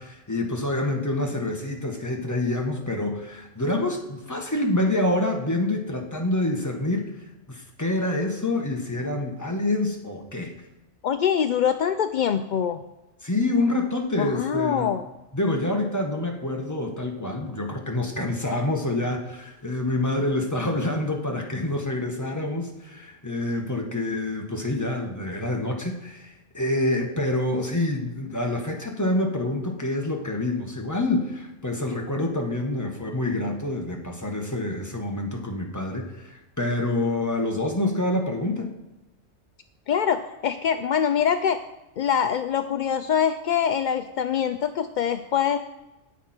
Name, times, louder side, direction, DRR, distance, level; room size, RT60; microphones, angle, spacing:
voice 1, 0.0-10.5 13.2-14.9 15.3-38.7, left 2 dB, 15° left, 2 dB, 1.4 m, -27 dB
voice 2, 11.0-12.8 14.2-15.0 39.9-41.6 42.0-45.6, left 8 dB, 65° left, 9 dB, 0.4 m, -24 dB
18.5 x 6.1 x 4.4 m, 0.99 s
omnidirectional pair, 1.3 m